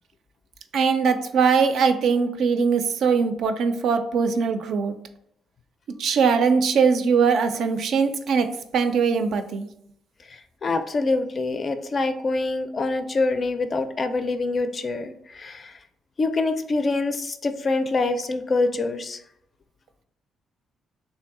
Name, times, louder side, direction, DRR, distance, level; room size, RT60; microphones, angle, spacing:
voice 1, 0.7-4.9 6.0-8.5 8.7-9.7, right 5 dB, 75° right, 8 dB, 0.4 m, -21 dB
voice 2, 10.3-15.8 16.2-19.2, left 3 dB, 40° left, 8 dB, 0.4 m, -25 dB
3.2 x 2.6 x 3.6 m, 0.74 s
cardioid pair, 90°, 0 cm